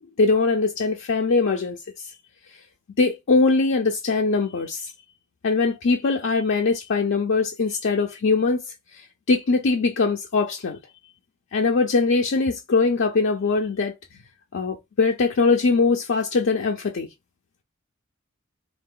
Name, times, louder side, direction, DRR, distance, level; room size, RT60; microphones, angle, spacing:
voice 1, 0.2-1.8 3.0-4.9 5.4-8.6 8.9-10.8 11.5-13.9 14.5-17.1, left 4 dB, 60° left, 0.5 m, -21 dB
3.8 x 2.5 x 3.7 m
head